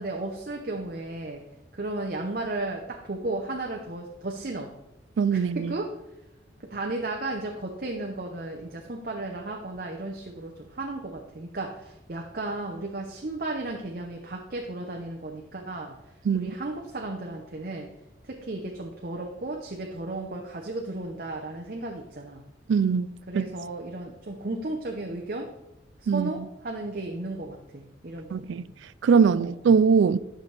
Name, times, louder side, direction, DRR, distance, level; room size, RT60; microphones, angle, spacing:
voice 1, 0.0-1.4 1.7-4.7 5.3-5.9 6.6-16.0 16.3-17.9 18.2-22.4 23.3-25.5 26.0-28.7 29.2-29.5, right 2 dB, 50° right, 0.8 m, -34 dB
voice 2, 5.2-5.7 16.2-16.5 22.7-23.1 23.3-23.5 26.1-26.5 28.3-28.6 29.0-30.2, right 6 dB, 85° right, 0.3 m, -21 dB
11.0 x 6.1 x 3.3 m
head